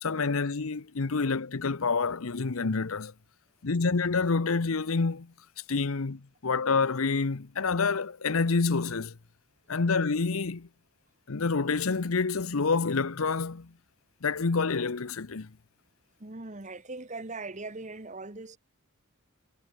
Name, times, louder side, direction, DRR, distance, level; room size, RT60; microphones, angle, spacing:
voice 1, 0.0-3.1 3.6-5.3 5.7-9.1 9.7-10.7 11.3-13.7 14.2-15.5, left 4 dB, 75° left, 0.8 m, -28 dB
voice 2, 16.2-18.6, right 3 dB, 35° right, 1.4 m, -40 dB
head